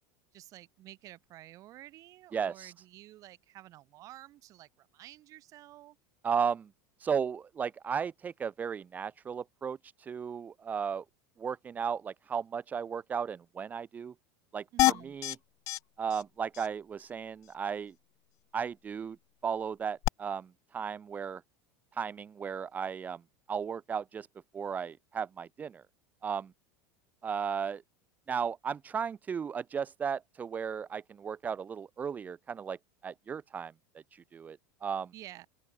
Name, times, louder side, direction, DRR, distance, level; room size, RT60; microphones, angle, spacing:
voice 1, 0.3-6.0 14.7-15.1 35.1-35.5, right 15 dB, 35° right, 7.4 m, -51 dB
voice 2, 2.3-2.7 6.2-6.7 7.0-11.0 11.4-14.1 14.5-15.4 16.0-17.9 18.5-19.2 19.4-21.4 21.9-23.2 23.5-24.3 24.5-25.8 26.2-26.5 27.2-27.8 28.3-32.8 33.0-33.7 34.1-35.1, right 7 dB, 15° right, 1.0 m, -35 dB
sound 1, 14.8-15.4 15.7-15.8 16.1-16.2 16.5-16.7 20.0-20.1, left 18 dB, 35° left, 0.4 m, -26 dB
open air
supercardioid pair, 165°, 10 cm